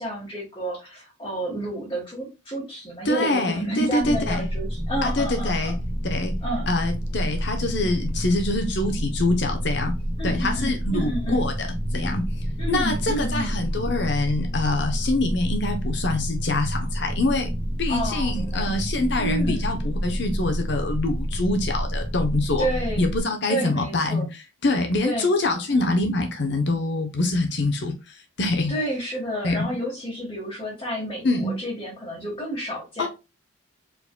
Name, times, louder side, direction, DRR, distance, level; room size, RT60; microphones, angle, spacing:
voice 1, 0.0-5.8 6.4-6.7 10.2-11.4 12.6-13.6 17.9-18.7 19.2-19.6 22.6-23.0 23.5-24.3 25.0-25.3 25.7-25.9 28.7-33.1, right 1 dB, 25° left, 1.5 m, -30 dB
voice 2, 3.0-4.5 5.0-5.7 6.1-6.3 6.7-9.9 10.2-12.2 12.7-17.5 17.8-22.7 23.0-28.7 29.4-29.7 31.2-31.5 33.0-33.1, left 2 dB, 55° left, 0.8 m, -25 dB
sound 1, 4.0-23.2, equal, 50° right, 1.6 m, -28 dB
4.7 x 4.0 x 2.2 m
head